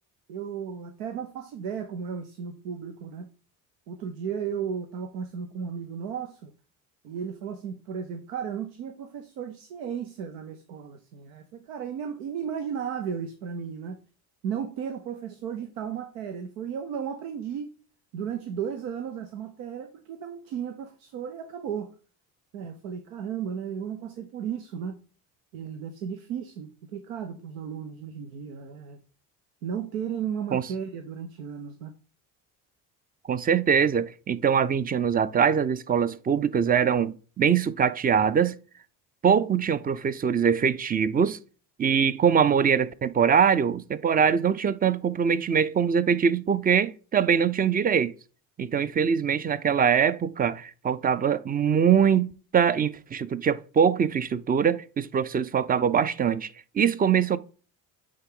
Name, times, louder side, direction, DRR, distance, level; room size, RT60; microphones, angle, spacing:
voice 1, 0.3-3.3 3.9-6.5 7.0-14.0 14.4-17.7 18.1-21.9 22.5-25.0 25.5-29.0 29.6-31.9, right 7 dB, 90° right, 0.9 m, -34 dB
voice 2, 33.3-38.6 39.2-41.4 41.8-48.1 48.6-57.4, right 7 dB, 25° right, 0.4 m, -23 dB
8.7 x 3.8 x 3.7 m
supercardioid pair, 85°, 40 cm